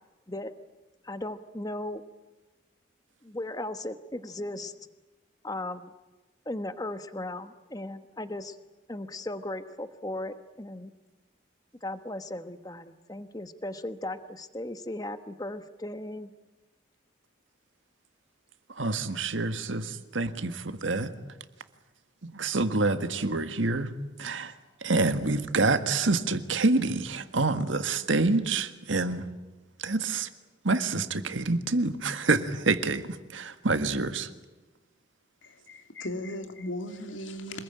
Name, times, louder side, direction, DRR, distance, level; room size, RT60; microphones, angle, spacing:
voice 1, 1.0-2.0 3.2-4.7 5.4-5.9 6.5-8.6 8.9-10.9 11.8-16.3, left 1 dB, 20° left, 1.1 m, -37 dB
voice 2, 18.7-21.1 22.2-23.9 24.2-24.5 24.8-29.3 29.8-30.3 30.6-34.3, right 3 dB, 80° right, 1.7 m, -27 dB
voice 3, 35.4-37.6, left 1 dB, 80° left, 2.8 m, -37 dB
27.0 x 20.5 x 9.0 m
head